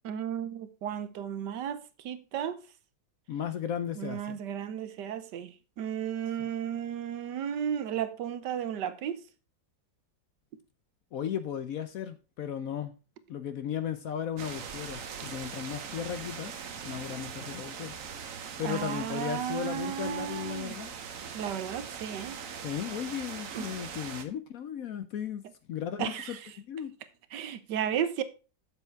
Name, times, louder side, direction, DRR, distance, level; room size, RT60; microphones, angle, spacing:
voice 1, 0.0-2.6 4.0-5.5 5.8-9.2 18.6-20.8 21.3-22.4 23.5-23.7 26.0-26.4 27.3-28.2, right 9 dB, 75° right, 1.4 m, -34 dB
voice 2, 3.3-4.4 6.4-6.5 11.1-12.9 13.3-16.6 16.8-17.9 18.6-20.9 22.6-25.4 25.7-26.9, left 9 dB, 65° left, 0.9 m, -36 dB
sound 1, 14.4-24.2, right 7 dB, 55° right, 1.2 m, -41 dB
7.2 x 7.0 x 4.5 m
omnidirectional pair, 1.9 m